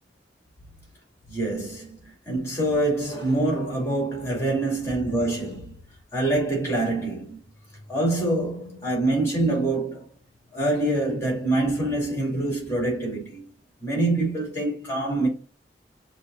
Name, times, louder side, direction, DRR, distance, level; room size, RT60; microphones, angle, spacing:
voice 1, 1.3-5.8 6.1-7.4 7.9-10.1 10.5-13.5 13.8-15.3, right 2 dB, 15° left, 2.6 m, -25 dB
6.6 x 3.0 x 2.5 m
head